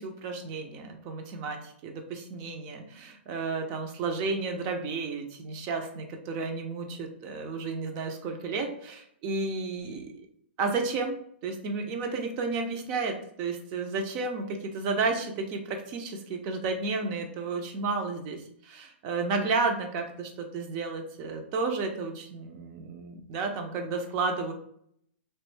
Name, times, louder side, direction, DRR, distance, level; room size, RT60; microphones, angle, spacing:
voice 1, 0.0-10.1 10.6-11.2 11.4-24.5, right 4 dB, 30° right, 4 dB, 0.6 m, -32 dB
3.1 x 2.6 x 3.3 m, 0.67 s
hypercardioid pair, 150°, 6 cm